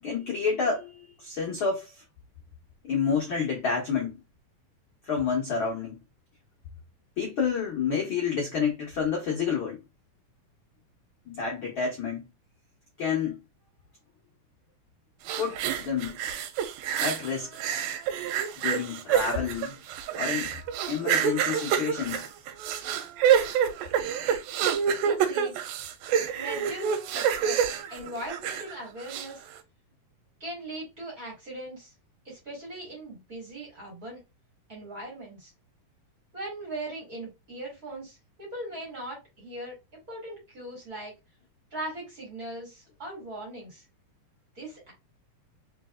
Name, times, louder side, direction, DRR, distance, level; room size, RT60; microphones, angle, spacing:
voice 1, 0.0-1.9 2.8-4.2 5.1-6.0 7.2-9.8 11.3-12.2 13.0-13.4 15.4-16.2 17.0-17.5 18.6-19.8 20.1-20.5 20.9-22.2 24.6-24.7, left 6 dB, 75° left, 1.1 m, -29 dB
sound 1, 15.3-17.3 17.6-28.7 29.1-29.3, right 8 dB, 90° right, 2.4 m, -27 dB
voice 2, 25.0-25.6 26.3-27.6 27.9-29.4 30.4-31.9 32.2-34.2 34.7-35.5 36.3-39.8 40.1-41.1 41.7-43.8 44.6-44.9, right 1 dB, 30° right, 2.1 m, -39 dB
4.6 x 4.0 x 2.3 m
omnidirectional pair, 4.1 m